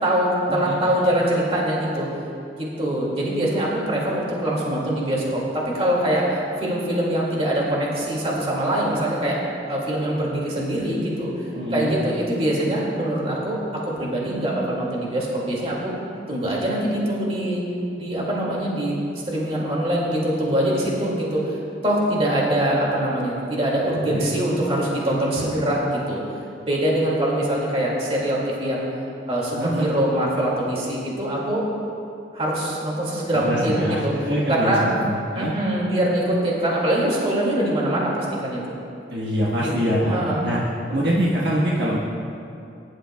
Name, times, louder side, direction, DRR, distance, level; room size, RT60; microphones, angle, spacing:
voice 1, 0.0-2.1 2.5-6.3 6.6-9.4 9.7-11.3 11.7-15.9 16.3-17.6 18.0-19.0 19.3-21.5 21.8-26.2 26.7-28.8 29.3-31.6 32.3-34.9 35.3-38.6 39.5-40.4, right 1 dB, 35° right, -4 dB, 2.2 m, -23 dB
voice 2, 11.5-11.9 23.9-24.3 29.5-29.9 33.3-34.8 35.0-35.5 39.1-40.6 40.9-42.0, equal, 65° right, -5 dB, 1.3 m, -24 dB
21.0 x 11.5 x 2.3 m, 2.6 s
head